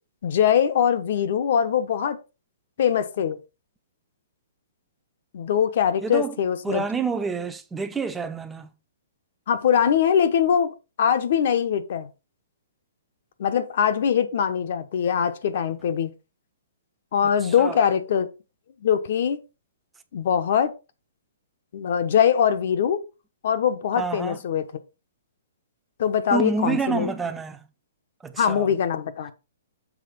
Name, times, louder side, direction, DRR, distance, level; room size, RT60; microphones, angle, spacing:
voice 1, 0.2-2.2 2.8-3.4 5.3-6.8 9.5-12.1 13.4-16.1 17.1-18.3 18.8-19.4 20.1-20.7 21.7-23.0 23.4-24.6 26.0-27.1 28.4-29.3, left 8 dB, 55° left, 1.1 m, -22 dB
voice 2, 6.0-6.4 6.6-8.7 17.2-17.9 24.0-24.4 26.3-27.7 28.2-28.7, right 5 dB, 10° right, 0.8 m, -28 dB
7.5 x 3.7 x 5.3 m
hypercardioid pair, 150°, 0 cm